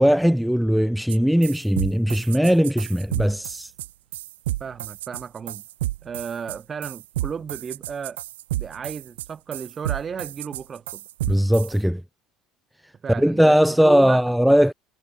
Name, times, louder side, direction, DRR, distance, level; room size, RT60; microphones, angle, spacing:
voice 1, 0.0-3.7 11.3-12.0 13.2-14.7, equal, ahead, 0.7 m, -19 dB
sound 1, 1.1-1.2 1.4-11.7, right 15 dB, 90° right, 1.0 m, -31 dB
voice 2, 4.6-5.6 6.0-8.2 8.6-11.0 13.0-14.2, right 6 dB, 35° right, 4.5 m, -34 dB
hypercardioid pair, 75°, 0 cm